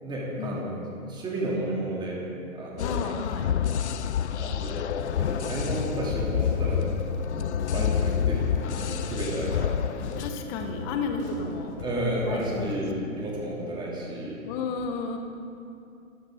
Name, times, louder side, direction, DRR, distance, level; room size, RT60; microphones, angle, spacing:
voice 1, 0.0-0.8 1.1-2.2 2.5-2.9 4.4-6.9 7.7-8.4 8.7-9.8 11.8-14.4, right 1 dB, 10° right, -4 dB, 3.4 m, -32 dB
sound 1, 2.8-10.3, left 8 dB, 55° left, 0.6 m, -28 dB
voice 2, 2.8-3.5 10.2-11.8 12.3-12.7 14.4-15.2, left 4 dB, 10° left, 4 dB, 0.5 m, -32 dB
sound 2, 5.0-12.8, left 2 dB, 30° left, 4.1 m, -39 dB
26.5 x 13.0 x 4.0 m, 2.5 s
figure-of-eight pair, 135°, 42 cm